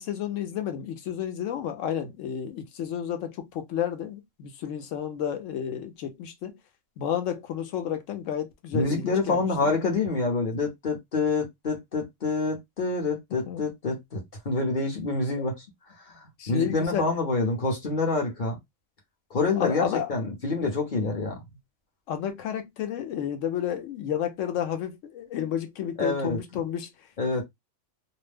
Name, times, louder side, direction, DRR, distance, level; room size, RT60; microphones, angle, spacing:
voice 1, 0.0-6.6 7.0-9.7 13.5-13.6 16.4-17.1 19.6-20.1 22.1-26.9, left 9 dB, 70° left, 0.9 m, -31 dB
voice 2, 8.7-15.6 16.1-18.6 19.3-21.4 26.0-26.4 27.2-27.4, left 3 dB, 45° left, 0.8 m, -27 dB
2.5 x 2.0 x 3.3 m
omnidirectional pair, 1.4 m